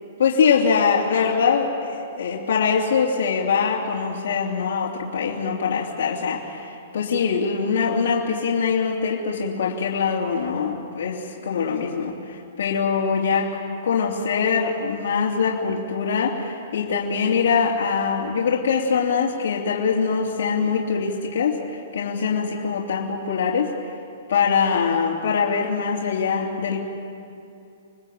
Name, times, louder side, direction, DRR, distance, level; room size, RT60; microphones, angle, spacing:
voice 1, 0.2-13.5 13.8-21.6 21.9-23.7 24.3-26.8, left 6 dB, 75° left, -3 dB, 2.9 m, -23 dB
27.5 x 20.5 x 7.9 m, 2.6 s
hypercardioid pair, 165°, 0 cm